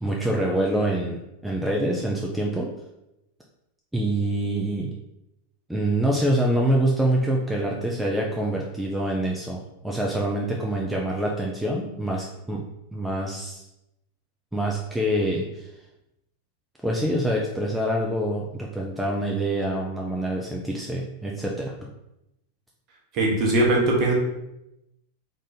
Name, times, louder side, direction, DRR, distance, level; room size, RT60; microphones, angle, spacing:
voice 1, 0.0-2.7 3.9-4.9 5.7-12.6 12.9-13.6 14.5-15.6 16.8-21.7, right 1 dB, 5° right, -2 dB, 0.4 m, -25 dB
voice 2, 23.1-24.1, right 2 dB, 40° right, -2 dB, 1.1 m, -20 dB
3.9 x 2.5 x 3.9 m, 0.87 s
figure-of-eight pair, 90°, 0 cm